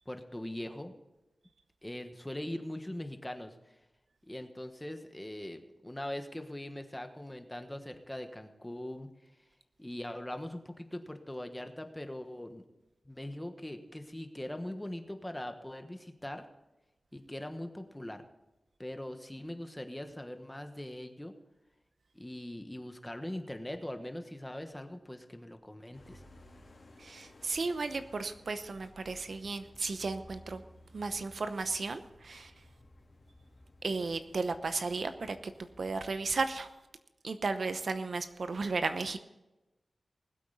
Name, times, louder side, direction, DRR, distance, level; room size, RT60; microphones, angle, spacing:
voice 1, 0.1-0.9 1.8-3.5 4.3-9.1 9.8-12.6 13.0-16.5 17.1-18.2 18.8-21.3 22.1-26.2, left 1 dB, 10° left, 7 dB, 1.3 m, -41 dB
sound 1, 25.9-36.4, left 1 dB, 60° left, 3.5 m, -57 dB
voice 2, 27.0-30.6 30.9-32.5 33.8-35.5 35.8-36.7 37.2-39.2, right 4 dB, 70° right, 9 dB, 0.8 m, -34 dB
20.0 x 8.5 x 4.1 m, 1.0 s
wide cardioid pair, 85°, 0 cm